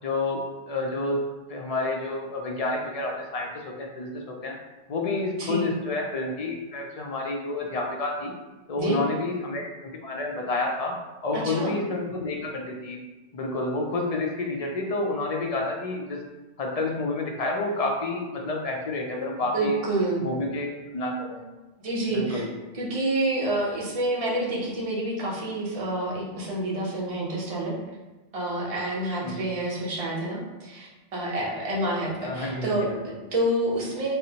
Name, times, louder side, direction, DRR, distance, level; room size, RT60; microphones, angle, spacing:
voice 1, 0.0-1.2 1.5-4.6 4.9-8.3 8.7-11.0 11.2-13.0 13.3-16.2 16.6-19.8 20.2-21.4 22.1-22.5 29.2-29.5 32.2-33.0, left 2 dB, 50° left, 0 dB, 0.5 m, -29 dB
voice 2, 11.3-11.8 19.5-20.3 21.8-22.4 22.7-27.8 28.3-34.1, right 1 dB, 40° right, -4 dB, 0.7 m, -28 dB
4.2 x 2.0 x 2.8 m, 1.1 s
omnidirectional pair, 1.1 m